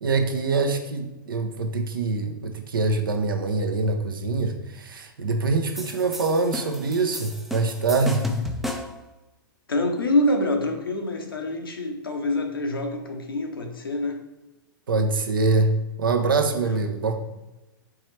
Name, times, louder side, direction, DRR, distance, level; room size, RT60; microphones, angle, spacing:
voice 1, 0.0-8.3 14.9-15.7 16.0-17.1, right 3 dB, 70° right, 6 dB, 0.6 m, -24 dB
sound 1, 5.8-9.1, left 2 dB, ahead, 0.3 m, -33 dB
voice 2, 9.7-14.3 16.6-16.8, left 1 dB, 80° left, 3 dB, 0.8 m, -26 dB
4.6 x 3.1 x 3.2 m, 1.0 s
figure-of-eight pair, 110°, 12 cm